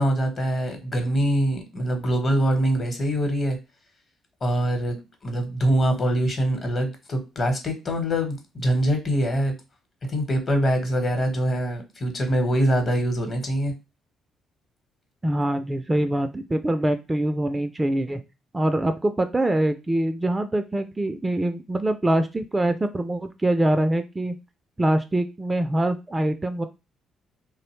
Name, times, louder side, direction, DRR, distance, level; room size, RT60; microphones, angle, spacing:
voice 1, 0.0-3.6 4.4-5.0 5.2-9.5 10.1-13.7, right 1 dB, 45° left, 5 dB, 0.9 m, -24 dB
voice 2, 15.2-18.2 18.5-24.4 24.8-26.7, right 1 dB, 20° right, 9 dB, 0.3 m, -24 dB
2.6 x 2.1 x 3.0 m, 0.26 s
supercardioid pair, 60°, 0 cm